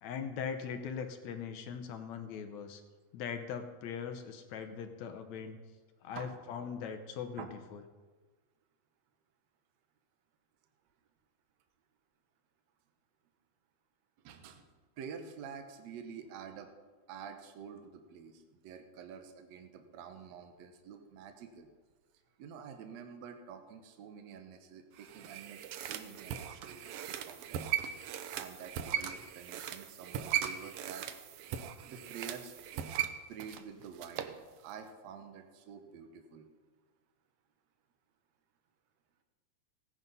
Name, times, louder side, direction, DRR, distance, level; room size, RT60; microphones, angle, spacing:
voice 1, 0.0-2.8 3.1-5.6 6.0-7.5 7.7-7.8, left 7 dB, 70° left, 7 dB, 2.0 m, -40 dB
voice 2, 14.2-14.6 15.0-16.7 17.1-21.7 22.4-27.7 28.3-31.1 31.9-32.5 32.9-34.3 34.6-36.5, right 7 dB, 65° right, 6 dB, 2.1 m, -48 dB
sound 1, 25.0-34.4 34.7-34.8, right 10 dB, 80° right, 1.3 m, -38 dB
16.5 x 9.9 x 5.4 m, 1.4 s
omnidirectional pair, 3.6 m